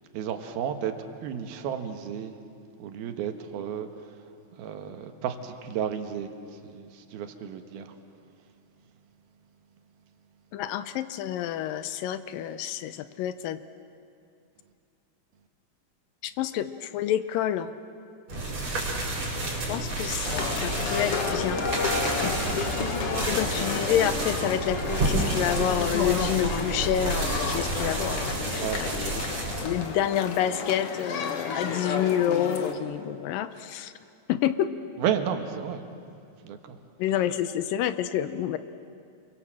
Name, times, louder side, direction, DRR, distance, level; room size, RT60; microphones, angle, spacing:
voice 1, 0.1-2.3 2.8-3.9 4.6-7.9 18.3-18.6 22.4-22.7 28.6-29.2 35.0-35.9 36.4-36.8, right 8 dB, 85° right, 7 dB, 3.2 m, -33 dB
voice 2, 10.5-13.6 16.2-17.7 19.7-21.7 23.3-29.2 29.6-33.9 34.3-34.7 37.0-38.6, left 10 dB, 75° left, 12 dB, 2.3 m, -28 dB
sound 1, 18.3-29.7, right 2 dB, 45° right, 6.0 m, -30 dB
sound 2, 20.2-32.7, left 5 dB, 50° left, 1.9 m, -31 dB
28.5 x 23.0 x 7.5 m, 2.5 s
omnidirectional pair, 4.2 m